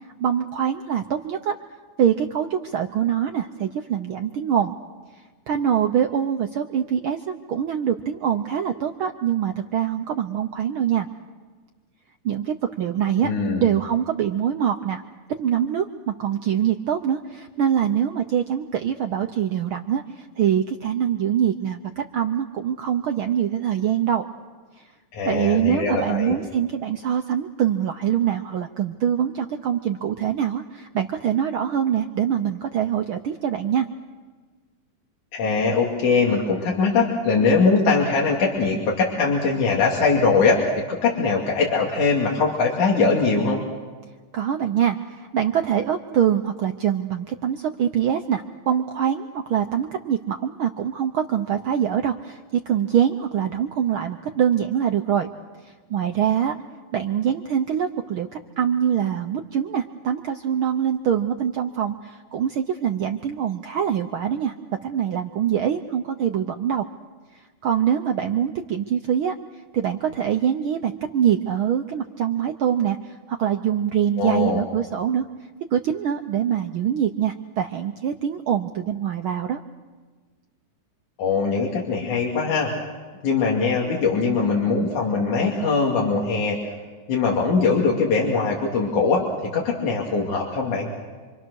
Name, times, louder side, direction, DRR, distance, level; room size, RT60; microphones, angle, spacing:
voice 1, 0.2-1.6 2.0-4.8 5.5-11.1 12.2-13.3 13.6-15.0 15.4-24.3 25.2-33.9 44.3-55.3 55.6-56.5 56.9-64.5 64.8-66.9 67.6-69.4 69.7-75.3 75.7-79.6, right 9 dB, 80° right, 6 dB, 1.2 m, -24 dB
voice 2, 13.2-13.6 25.1-26.3 35.3-40.6 40.9-43.6 74.2-74.6 81.2-82.7 83.2-86.6 87.1-89.2 89.5-90.9, left 4 dB, 75° left, -2 dB, 4.0 m, -21 dB
27.5 x 25.5 x 6.4 m, 1.4 s
omnidirectional pair, 3.5 m